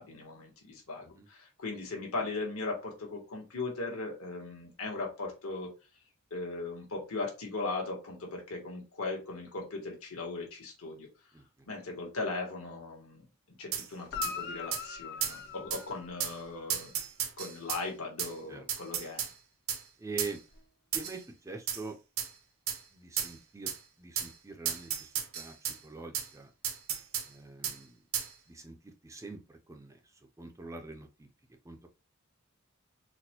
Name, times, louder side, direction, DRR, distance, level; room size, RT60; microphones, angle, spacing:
voice 1, 0.0-5.7 6.3-11.1 11.7-13.2 13.6-16.9 17.4-19.3, left 3 dB, 70° left, 1 dB, 1.2 m, -38 dB
sound 1, 13.7-13.9 14.2-14.3 14.7-14.8 15.2-15.4 15.7-15.8 16.2-16.4 16.7-17.8 18.2-18.3 18.7-19.3 19.7-19.8 20.2-20.3 20.9-21.2 21.7-21.8 22.2-22.3 22.7-22.8 23.2-23.3 23.7-23.8 24.2-24.3 24.7-25.8 26.1-26.3 26.6-27.3 27.6-27.8 28.1-28.3, right 9 dB, 65° right, 0.6 m, -33 dB
Guitar, 14.0-16.6 20.5-20.6, left 7 dB, 50° left, 0.5 m, -41 dB
voice 2, 20.0-20.4 20.9-22.0 22.9-23.7 24.0-26.5 27.3-28.0 28.5-31.3 31.6-31.9, right 3 dB, 15° right, 4 dB, 0.4 m, -44 dB
4.1 x 2.1 x 2.8 m, 0.30 s
head